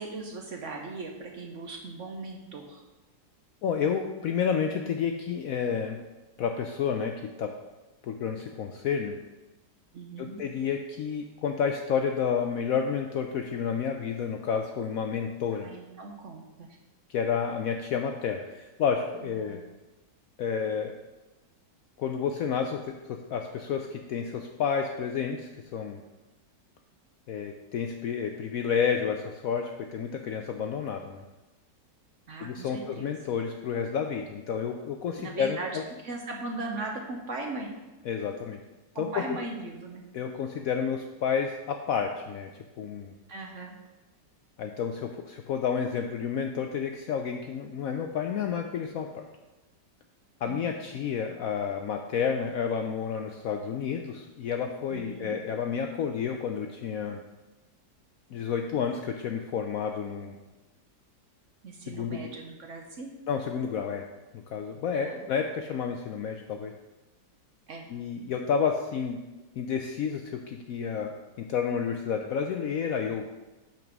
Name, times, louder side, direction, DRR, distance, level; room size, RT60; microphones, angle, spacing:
voice 1, 0.0-2.8 9.9-10.4 15.5-16.7 19.2-19.6 32.3-33.1 35.2-35.7 36.0-37.7 38.9-40.0 43.3-43.8 50.4-50.7 54.9-55.4 61.6-63.2 64.9-65.3 67.7-67.9, right 3 dB, 55° right, 1 dB, 1.0 m, -38 dB
voice 2, 3.6-6.0 6.4-7.6 8.0-9.2 10.2-15.7 17.1-19.6 20.4-20.9 22.0-26.0 27.3-31.2 32.4-35.8 38.1-38.6 39.0-39.1 40.1-42.5 42.8-43.1 44.6-49.3 50.4-57.2 58.3-60.3 61.9-62.3 63.3-64.1 64.5-66.7 67.9-69.2 69.6-73.3, left 7 dB, 70° left, 4 dB, 0.8 m, -30 dB
5.9 x 5.3 x 6.0 m, 1.1 s
omnidirectional pair, 1.9 m